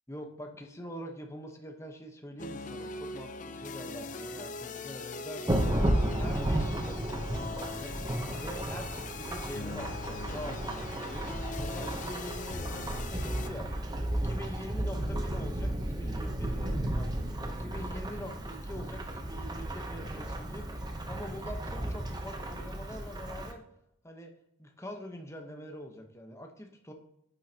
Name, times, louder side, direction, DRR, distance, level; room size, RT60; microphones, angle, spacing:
voice 1, 0.1-7.9 8.4-13.7 14.1-23.6 24.0-24.3 24.6-26.9, equal, 15° left, 4 dB, 1.0 m, -44 dB
sound 1, 2.4-13.5, left 3 dB, 40° left, 0.5 m, -40 dB
Thunderstorm / Rain, 5.5-23.5, right 1 dB, 20° right, 0.8 m, -33 dB
9.3 x 7.7 x 2.8 m, 0.80 s
head